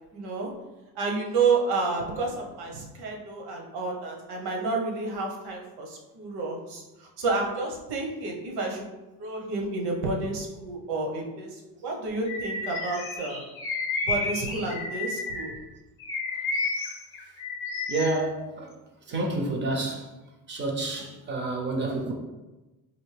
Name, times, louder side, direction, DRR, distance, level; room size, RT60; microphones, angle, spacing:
voice 1, 0.1-0.5 1.0-13.4 14.0-15.5, right 3 dB, 80° right, 0 dB, 1.0 m, -30 dB
Bird vocalization bird call bird song, 12.3-15.6 16.0-18.2, left 3 dB, 35° left, 0.6 m, -31 dB
voice 2, 17.9-18.7 19.1-20.1 20.5-22.1, right 2 dB, 30° right, 1 dB, 0.5 m, -29 dB
4.2 x 2.6 x 3.2 m, 1.1 s
cardioid pair, 170°, 39 cm